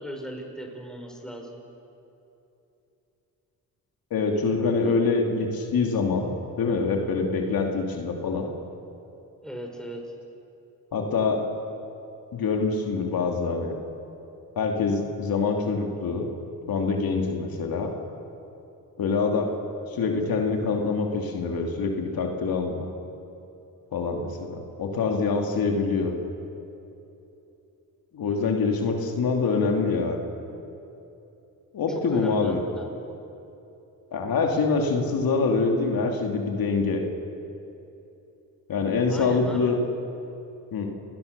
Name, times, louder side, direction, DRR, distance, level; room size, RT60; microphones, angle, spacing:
voice 1, 0.0-1.6 9.4-10.0 31.9-32.8 39.1-39.7, equal, ahead, 1 dB, 5.0 m, -38 dB
voice 2, 4.1-6.3 6.6-8.5 10.9-11.4 12.3-13.7 14.6-16.3 16.7-17.9 19.0-19.5 19.9-22.8 23.9-26.2 28.1-30.2 31.7-32.6 34.1-37.0 38.7-39.8 40.7-40.9, left 4 dB, 75° left, 2 dB, 2.7 m, -25 dB
29.5 x 19.5 x 6.7 m, 2.9 s
cardioid pair, 85°, 36 cm